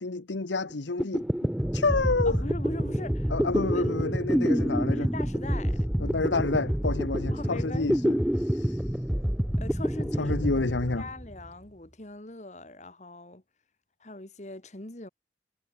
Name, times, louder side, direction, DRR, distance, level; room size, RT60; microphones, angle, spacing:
voice 1, 0.0-1.2 1.7-2.4 3.3-5.1 6.0-8.9 10.2-11.1, left 3 dB, 90° left, 1.0 m, -29 dB
sound 1, 0.7-0.8 1.0-11.5, equal, 5° right, 0.4 m, -27 dB
voice 2, 2.3-3.3 3.7-3.9 4.9-6.0 7.3-8.0 9.6-13.4 14.0-15.1, left 2 dB, 40° left, 1.8 m, -42 dB
head